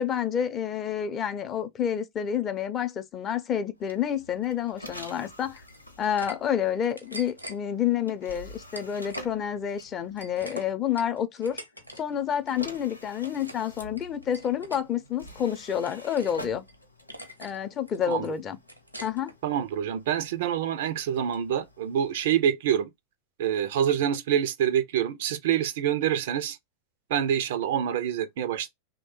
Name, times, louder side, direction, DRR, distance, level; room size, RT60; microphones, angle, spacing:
voice 1, 0.0-5.6 6.0-11.6 12.0-16.6 17.4-18.6 19.0-19.3, left 9 dB, 25° left, 0.5 m, -29 dB
sound 1, 3.8-10.7 11.8-22.3, left 1 dB, 85° left, 0.6 m, -48 dB
sound 2, 5.5-6.4 6.7-7.6 8.3-9.3 9.6-12.0 12.3-12.6 13.0-13.7 14.0-14.8 15.3-16.4 16.7-16.8 17.1-17.6 17.9-19.4, equal, 90° right, 0.7 m, -44 dB
voice 2, 19.4-22.9 23.4-26.6 27.1-28.7, right 9 dB, 55° right, 0.3 m, -26 dB
3.1 x 2.1 x 2.9 m
figure-of-eight pair, 90°, 0 cm